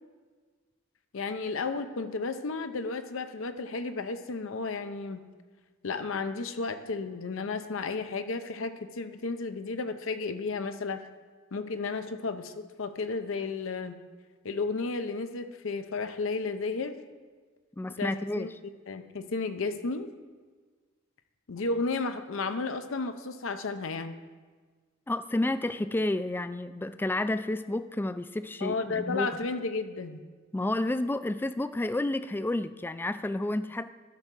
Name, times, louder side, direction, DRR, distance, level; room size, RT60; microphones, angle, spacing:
voice 1, 1.1-5.2 5.8-11.0 11.5-14.0 14.4-17.0 18.0-18.5 18.9-20.1 21.5-24.2 28.6-30.2, left 4 dB, 70° left, 9 dB, 0.6 m, -33 dB
voice 2, 17.8-18.5 25.1-29.3 30.5-33.9, left 1 dB, 10° left, 13 dB, 0.3 m, -30 dB
12.5 x 5.5 x 6.2 m, 1.5 s
head